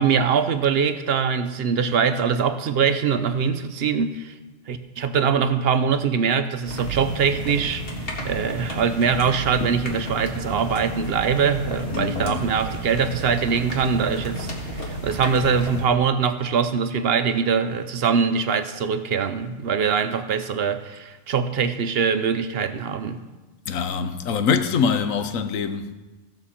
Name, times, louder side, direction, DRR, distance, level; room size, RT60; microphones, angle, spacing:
voice 1, 0.0-4.3 4.7-7.8 8.2-23.2, right 6 dB, 60° right, 0.7 m, -23 dB
sound 1, 6.6-15.8, equal, 45° left, 1.9 m, -32 dB
voice 2, 11.9-12.4 23.7-25.9, left 6 dB, 85° left, 1.2 m, -24 dB
16.0 x 6.6 x 4.2 m
omnidirectional pair, 1.4 m